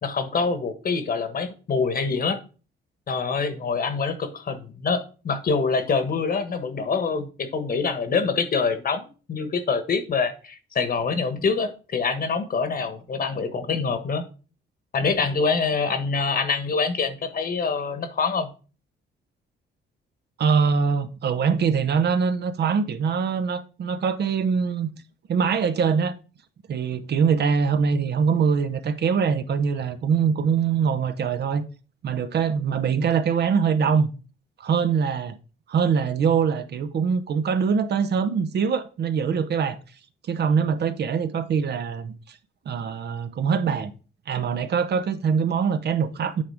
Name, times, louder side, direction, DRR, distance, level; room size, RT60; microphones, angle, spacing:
voice 1, 0.0-2.4 3.1-14.3 14.9-18.5, left 4 dB, 50° left, 1.4 m, -25 dB
voice 2, 20.4-24.9 25.3-26.1 26.7-31.6 32.0-34.1 34.6-35.4 35.7-39.8 40.3-42.4 42.7-43.9 44.3-46.4, right 6 dB, 55° right, 0.8 m, -23 dB
8.7 x 3.6 x 5.0 m
cardioid pair, 90°, 20 cm